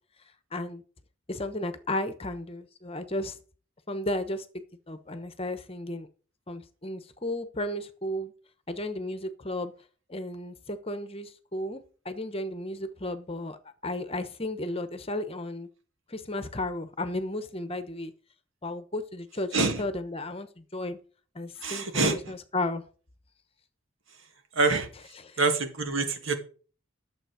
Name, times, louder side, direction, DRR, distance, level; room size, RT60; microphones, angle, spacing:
voice 1, 0.5-0.8 1.3-3.4 3.9-4.5 4.9-6.1 6.5-8.3 8.7-9.7 10.1-13.6 13.8-15.7 16.1-18.1 18.6-21.0 21.3-22.8 25.2-25.4, left 1 dB, 30° left, 1.1 m, -34 dB
voice 2, 19.5-19.8 21.6-22.2 24.6-24.9 25.4-26.4, right 3 dB, 75° right, 2.2 m, -25 dB
12.0 x 7.2 x 5.0 m
head